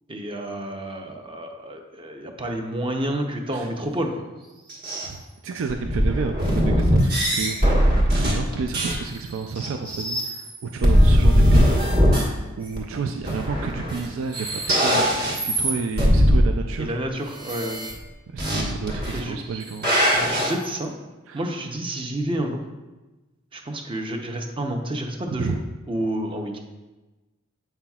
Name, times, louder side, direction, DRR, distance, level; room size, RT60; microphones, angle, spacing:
voice 1, 0.1-4.3 16.8-17.8 19.1-19.4 20.1-20.9 21.3-22.6 23.5-25.5 25.9-26.6, right 1 dB, 25° right, 3 dB, 0.6 m, -29 dB
sound 1, 4.7-5.1 5.7-9.1 9.6-10.6 10.8-12.2 12.8-12.9 13.2-14.1 14.3-16.5 17.4-17.9 18.4-18.6 18.9-19.2 19.5-20.5, equal, 50° right, 1.5 m, -20 dB
voice 2, 5.0-11.7 12.6-14.5 14.8-17.0 18.3-19.9 21.3-21.4 25.3-25.6, right 5 dB, 65° right, 5 dB, 0.4 m, -31 dB
7.7 x 5.7 x 2.3 m, 1.1 s
head